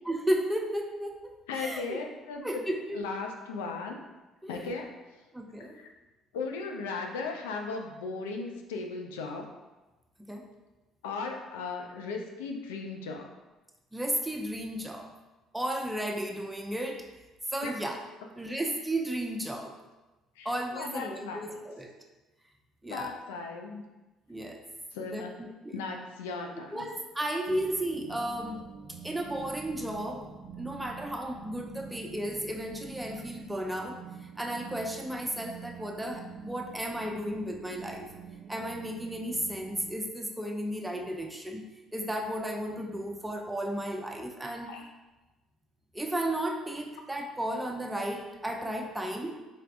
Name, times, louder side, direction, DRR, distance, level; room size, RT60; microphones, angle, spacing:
voice 1, 0.1-2.0 2.4-3.1 4.4-4.7 5.3-5.8 10.2-10.5 13.9-15.1 15.5-17.0 17.5-17.9 18.4-19.7 20.4-21.9 22.8-23.2 24.3-24.6 25.1-25.8 26.7-28.6 29.0-30.3 30.6-34.0 34.4-38.1 38.5-41.7 41.9-44.8 45.9-49.4, right 1 dB, 10° right, 2 dB, 0.7 m, -34 dB
voice 2, 1.5-2.4 2.9-4.0 4.5-4.9 5.7-5.9 6.3-9.5 11.0-13.3 17.6-17.7 20.4-21.6 22.9-23.8 24.9-25.4 25.7-26.9 44.4-44.9, left 4 dB, 75° left, 2 dB, 0.5 m, -37 dB
sound 1, 27.5-40.0, right 6 dB, 60° right, 0.5 m, -46 dB
4.4 x 4.3 x 2.5 m, 1.1 s
figure-of-eight pair, 50°, 0 cm